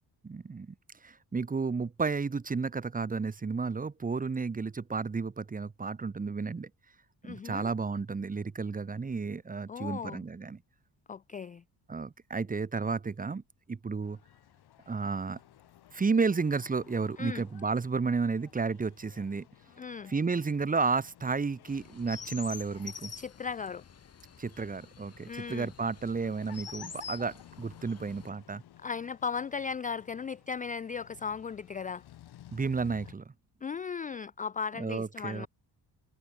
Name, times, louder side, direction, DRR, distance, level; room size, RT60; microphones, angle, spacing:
voice 1, 0.2-0.7 1.0-6.7 7.3-10.6 11.9-13.4 13.7-14.2 14.9-15.4 15.9-19.5 20.1-23.1 24.4-28.6 32.5-33.2 34.8-35.5, right 4 dB, 20° right, 1.2 m, -32 dB
voice 2, 7.2-7.7 9.7-10.2 11.1-11.6 17.2-17.4 19.8-20.1 23.2-23.8 25.3-25.7 28.8-32.0 33.6-35.5, left 6 dB, 20° left, 0.4 m, -37 dB
sound 1, 14.0-33.1, left 13 dB, 70° left, 2.2 m, -56 dB
Chirp tweet, 21.7-28.3, left 6 dB, 35° left, 3.3 m, -47 dB
cardioid pair, 115°, 40 cm